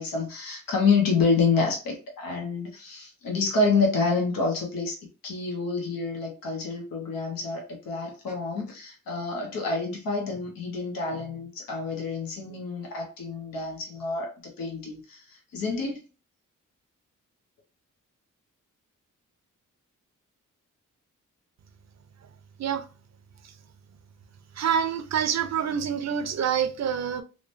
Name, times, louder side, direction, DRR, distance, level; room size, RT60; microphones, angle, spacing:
voice 1, 0.0-5.0 5.2-16.0, left 4 dB, 90° left, 0.9 m, -28 dB
voice 2, 24.6-27.2, right 8 dB, 55° right, 0.5 m, -26 dB
2.9 x 2.1 x 2.5 m
cardioid pair, 60°, 33 cm